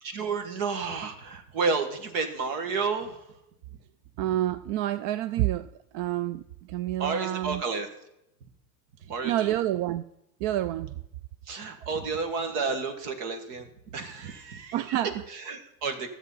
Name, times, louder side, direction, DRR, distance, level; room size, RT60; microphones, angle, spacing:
voice 1, 0.0-3.2 7.0-7.9 9.1-9.6 11.5-13.7 13.9-15.0 15.3-16.1, right 4 dB, 85° right, 1.6 m, -31 dB
voice 2, 4.2-5.7 5.9-6.4 6.7-7.6 9.2-10.0 10.4-10.9 14.7-15.2, right 13 dB, 65° right, 0.5 m, -28 dB
13.0 x 7.1 x 5.5 m
supercardioid pair, 85°, 44 cm